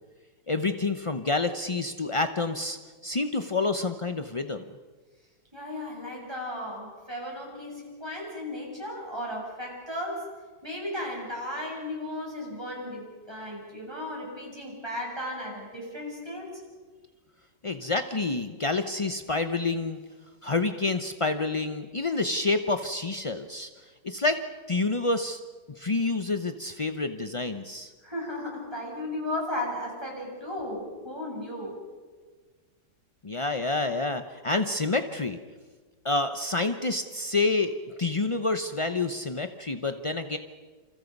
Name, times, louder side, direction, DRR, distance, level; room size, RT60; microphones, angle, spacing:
voice 1, 0.5-4.6 17.6-20.0 20.4-23.7 24.0-25.4 25.8-27.9 33.2-35.4 36.0-37.7 38.0-40.4, left 3 dB, 45° left, 8 dB, 0.4 m, -28 dB
voice 2, 5.5-10.3 10.6-16.6 28.0-31.8, left 1 dB, 15° right, -2 dB, 8.1 m, -35 dB
29.0 x 28.0 x 5.4 m, 1.4 s
omnidirectional pair, 1.9 m